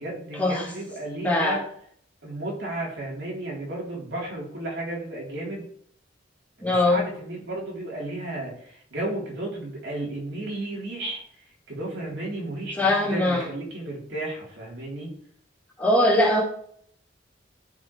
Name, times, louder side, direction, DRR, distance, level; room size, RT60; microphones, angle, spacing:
voice 1, 0.0-1.6 2.2-5.7 6.6-15.1, right 2 dB, 70° right, -4 dB, 3.7 m, -33 dB
voice 2, 1.2-1.6 6.6-7.0 12.8-13.4 15.8-16.4, left 1 dB, 10° left, -4 dB, 2.1 m, -21 dB
14.5 x 5.5 x 3.3 m, 0.63 s
head